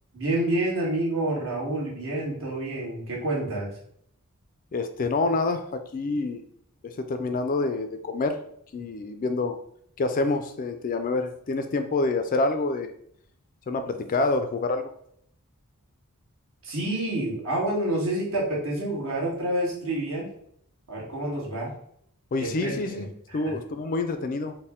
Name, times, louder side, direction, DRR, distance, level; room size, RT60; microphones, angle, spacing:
voice 1, 0.1-3.7 16.6-20.3 20.9-21.7 22.4-23.5, right 1 dB, 65° right, -3 dB, 1.4 m, -28 dB
voice 2, 4.7-6.4 6.8-8.4 8.7-9.6 10.0-12.9 13.7-14.9 22.3-23.1 23.3-24.6, left 3 dB, 40° left, 8 dB, 0.3 m, -27 dB
4.3 x 2.1 x 3.5 m, 0.67 s
head